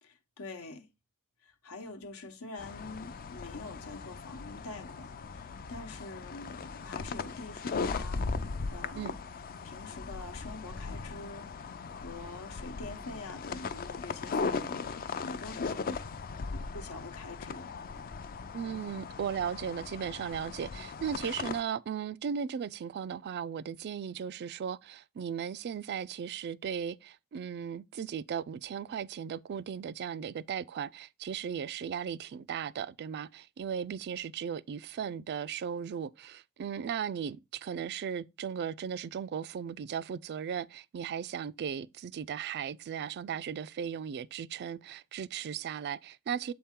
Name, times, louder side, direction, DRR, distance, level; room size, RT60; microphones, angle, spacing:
voice 1, 0.0-0.9 1.4-8.2 8.7-9.2 9.6-14.8 15.2-16.0 16.5-17.7, left 3 dB, 75° left, 1.0 m, -45 dB
sound 1, 2.6-21.6, left 4 dB, 40° left, 0.4 m, -38 dB
voice 2, 18.5-46.5, right 7 dB, 50° right, 0.3 m, -36 dB
7.4 x 4.3 x 3.6 m
head